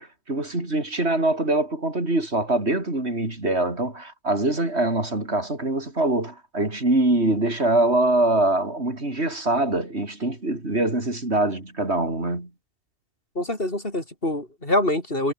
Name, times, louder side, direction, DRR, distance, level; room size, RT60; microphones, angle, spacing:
voice 1, 0.0-12.5, right 2 dB, 75° right, 5.3 m, -23 dB
voice 2, 13.3-15.3, left 1 dB, 55° left, 6.5 m, -25 dB
omnidirectional pair, 1.1 m